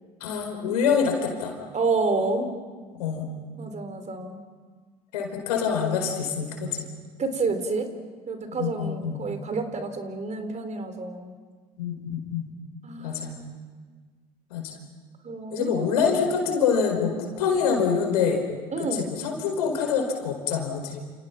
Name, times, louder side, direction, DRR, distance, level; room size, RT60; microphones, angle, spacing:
voice 1, 0.2-1.5 3.0-3.3 5.1-6.9 8.6-9.2 11.8-12.5 13.0-13.3 14.5-14.7 15.5-18.4 19.0-21.0, left 6 dB, 80° left, 3 dB, 5.0 m, -25 dB
voice 2, 1.7-2.5 3.6-4.4 7.2-7.9 8.3-11.3 12.8-13.6 15.2-16.0 18.7-19.1, right 3 dB, 35° right, 8 dB, 4.0 m, -29 dB
29.5 x 29.0 x 6.0 m, 1.5 s
hypercardioid pair, 65°, 20 cm